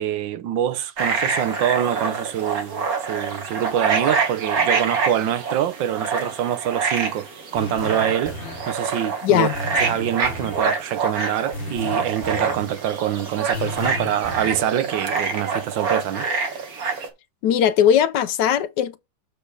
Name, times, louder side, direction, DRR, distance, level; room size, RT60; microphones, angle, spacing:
voice 1, 0.0-7.3 7.5-8.3 8.7-9.5 9.8-16.2, right 11 dB, 75° right, 1.5 m, -25 dB
sound 1, 1.0-17.1, right 5 dB, 50° right, 1.8 m, -26 dB
sound 2, 7.6-8.8 9.5-10.7 11.5-12.7 13.5-14.7, left 2 dB, 40° left, 1.2 m, -33 dB
voice 2, 9.2-9.5 17.4-19.0, left 9 dB, 70° left, 1.1 m, -18 dB
6.9 x 5.1 x 4.8 m
omnidirectional pair, 2.1 m